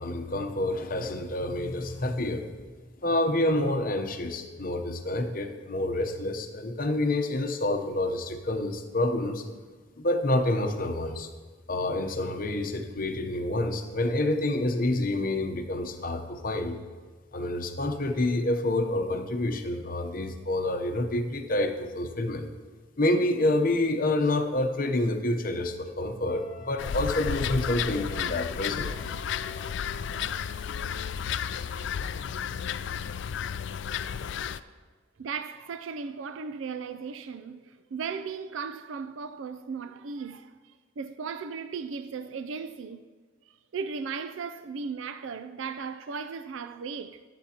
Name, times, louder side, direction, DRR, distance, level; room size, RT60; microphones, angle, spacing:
voice 1, 0.0-2.5 3.0-9.4 10.0-11.3 11.7-16.8 17.3-22.5 23.0-28.9, left 1 dB, 45° left, 0.8 m, -28 dB
Wind instrument woodwind instrument, 26.3-30.2, equal, ahead, 2.8 m, -50 dB
sound 1, 26.8-34.6, left 8 dB, 60° left, 0.3 m, -32 dB
voice 2, 35.2-43.1 43.5-47.2, right 5 dB, 70° right, 0.4 m, -37 dB
21.0 x 8.2 x 2.9 m
head